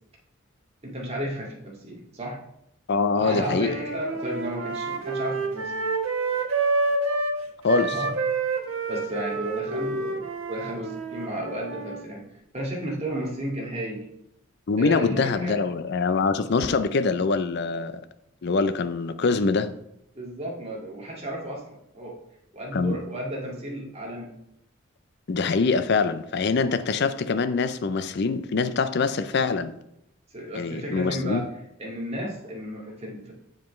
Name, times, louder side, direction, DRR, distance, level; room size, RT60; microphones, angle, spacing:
voice 1, 0.8-2.4 3.1-5.7 7.9-8.1 8.9-12.2 12.5-14.1 14.8-15.6 20.2-21.6 21.9-22.2 22.5-24.3 30.3-31.5 31.8-33.3, right 1 dB, 30° right, 2.0 m, -33 dB
voice 2, 2.9-3.8 7.6-8.0 14.7-17.9 18.4-19.7 22.7-23.0 25.3-29.7 30.5-31.5, left 4 dB, 55° left, 0.5 m, -24 dB
sound 1, 3.5-7.4 7.7-12.0, right 3 dB, 90° right, 1.1 m, -28 dB
7.6 x 7.1 x 3.1 m
head